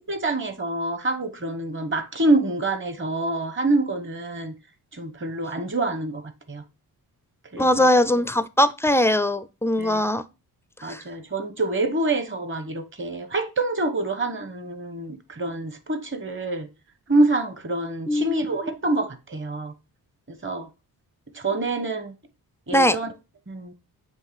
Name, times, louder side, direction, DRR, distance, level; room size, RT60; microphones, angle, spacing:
voice 1, 0.1-4.5 4.9-6.2 6.5-6.6 7.5-7.9 9.8-10.0 10.8-16.7 17.1-19.7 20.4-20.7 21.3-22.1 22.7-23.1 23.5-23.7, right 2 dB, 30° right, 1.1 m, -26 dB
voice 2, 7.6-10.2 10.8-11.0 18.1-18.7 22.7-23.0, left 1 dB, 5° left, 0.4 m, -21 dB
7.5 x 3.1 x 4.7 m
cardioid pair, 100°, 38 cm